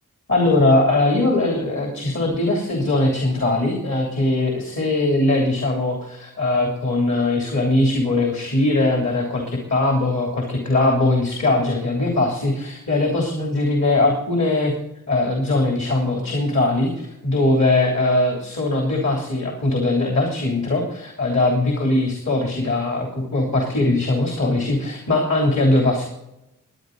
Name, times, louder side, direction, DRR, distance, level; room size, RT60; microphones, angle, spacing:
voice 1, 0.3-14.8 15.1-26.1, left 2 dB, 60° left, 1 dB, 3.2 m, -20 dB
20.0 x 10.0 x 4.0 m, 0.88 s
cardioid pair, 70°, 31 cm